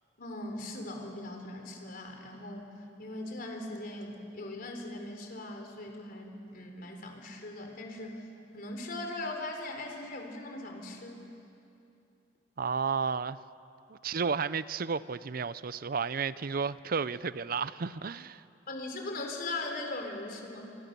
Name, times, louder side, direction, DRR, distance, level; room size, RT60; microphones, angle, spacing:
voice 1, 0.2-8.2 8.5-11.2 18.7-20.8, left 2 dB, 55° left, 4.0 m, -40 dB
voice 2, 12.6-13.4 13.9-18.4, right 5 dB, 55° right, 0.6 m, -32 dB
26.5 x 25.0 x 6.9 m
head